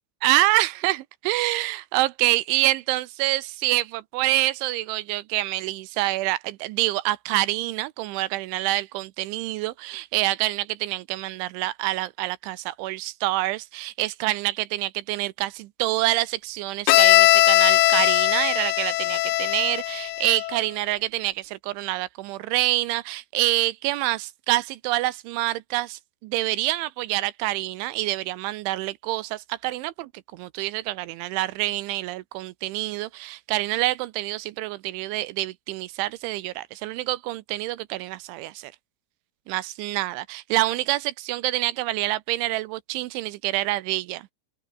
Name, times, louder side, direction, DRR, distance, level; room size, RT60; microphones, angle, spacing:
voice 1, 0.2-38.7 39.5-44.3, right 17 dB, 80° right, 2.9 m, -26 dB
Bowed string instrument, 16.9-20.6, left 16 dB, 75° left, 3.4 m, -19 dB
open air
omnidirectional pair, 5.9 m